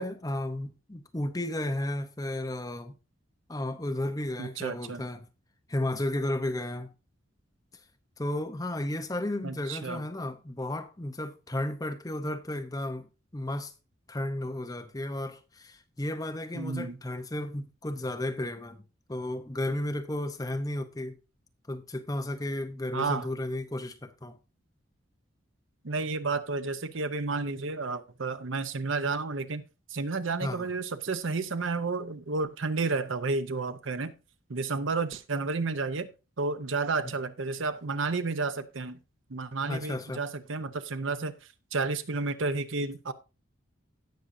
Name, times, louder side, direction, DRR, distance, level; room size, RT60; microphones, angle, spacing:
voice 1, 0.0-3.0 3.5-5.3 5.7-6.9 8.2-13.1 13.3-13.7 14.1-18.8 19.1-21.2 21.7-24.4 30.4-30.7 37.0-37.1 39.7-40.2, left 1 dB, 15° left, 0.7 m, -33 dB
voice 2, 4.4-5.1 9.4-10.0 16.5-17.0 22.9-23.3 25.8-29.6 29.9-34.1 34.5-36.1 36.4-39.0 39.3-41.3 41.7-43.1, right 3 dB, 70° right, 0.8 m, -31 dB
17.0 x 6.3 x 2.7 m
head